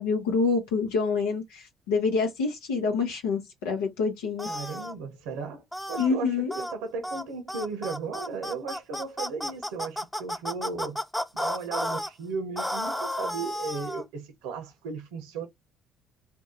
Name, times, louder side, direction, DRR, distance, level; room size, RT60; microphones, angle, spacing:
voice 1, 0.0-4.5 6.0-6.5, left 4 dB, 85° left, 0.7 m, -27 dB
sound 1, 4.4-4.9 5.7-6.1 6.5-6.7 7.0-7.2 7.5-12.1 12.6-14.0, left 1 dB, 10° left, 0.7 m, -32 dB
voice 2, 4.5-11.0 11.3-15.5, right 4 dB, 85° right, 0.8 m, -36 dB
2.7 x 2.2 x 3.6 m
supercardioid pair, 65°, 0 cm